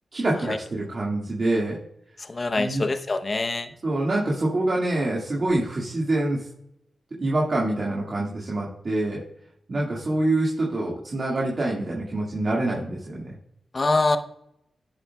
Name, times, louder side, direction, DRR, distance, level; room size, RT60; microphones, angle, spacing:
voice 1, 0.1-1.8 2.6-2.9 3.8-6.5 7.2-9.2 9.7-13.3, right 2 dB, 50° right, -5 dB, 1.9 m, -25 dB
voice 2, 2.3-3.7 13.7-14.2, left 3 dB, 45° left, 9 dB, 0.8 m, -24 dB
10.5 x 7.3 x 2.3 m, 0.77 s
cardioid pair, 55°, 0 cm